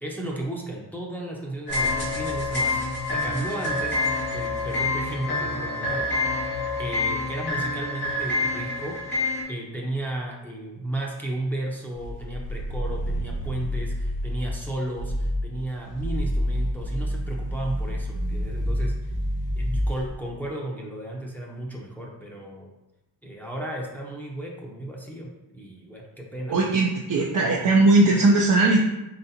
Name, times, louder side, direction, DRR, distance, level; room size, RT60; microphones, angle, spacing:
voice 1, 0.0-4.0 4.3-6.1 6.8-9.0 9.5-18.9 19.6-22.7 23.2-26.7, right 1 dB, 5° left, -2 dB, 0.7 m, -34 dB
sound 1, 1.7-9.4, left 2 dB, 80° left, 1.5 m, -27 dB
sound 2, 12.0-14.6 14.9-15.5 15.9-20.1, equal, 60° left, 1.1 m, -28 dB
voice 2, 26.5-28.8, right 2 dB, 50° right, -2 dB, 0.6 m, -19 dB
4.1 x 3.4 x 2.7 m, 0.94 s
cardioid pair, 65°, 39 cm